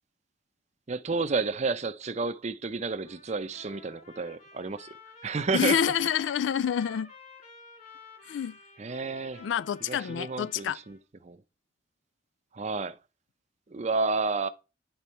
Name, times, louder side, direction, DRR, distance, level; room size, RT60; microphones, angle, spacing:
voice 1, 0.9-4.9 5.2-5.9 8.8-9.4 9.9-11.0 11.2-11.4 12.5-12.9 13.7-14.5, right 4 dB, 40° right, 0.6 m, -31 dB
Trumpet, 3.0-11.0, left 4 dB, 45° left, 3.8 m, -51 dB
voice 2, 5.5-7.1 8.3-8.6 9.4-10.8, left 8 dB, 80° left, 0.3 m, -27 dB
10.0 x 4.0 x 4.4 m
head